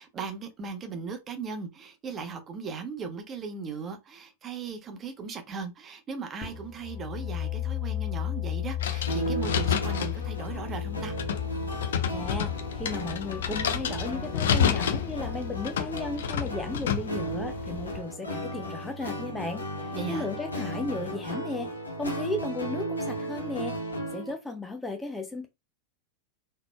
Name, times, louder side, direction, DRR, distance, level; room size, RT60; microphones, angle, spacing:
voice 1, 0.0-11.2 19.9-20.3, right 5 dB, 25° right, 0.8 m, -38 dB
sound 1, 6.4-16.0, left 13 dB, 35° left, 1.0 m, -35 dB
sound 2, 8.8-18.0, left 8 dB, 60° left, 0.5 m, -30 dB
sound 3, 9.1-24.3, right 1 dB, 75° left, 1.0 m, -36 dB
voice 2, 12.1-21.7 22.0-23.8 24.1-25.5, left 2 dB, 10° left, 0.5 m, -35 dB
3.9 x 3.2 x 2.2 m
figure-of-eight pair, 90°, 0 cm